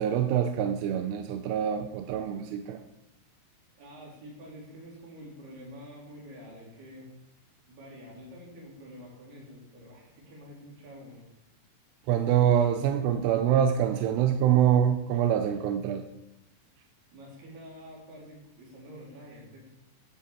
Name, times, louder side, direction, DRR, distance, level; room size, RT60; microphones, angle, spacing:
voice 1, 0.0-2.8 12.1-16.0, right 9 dB, 80° right, 6 dB, 2.8 m, -25 dB
voice 2, 3.8-7.1 7.7-11.2 17.1-19.6, equal, 60° right, -4 dB, 6.3 m, -47 dB
11.5 x 8.6 x 7.5 m, 0.87 s
omnidirectional pair, 5.2 m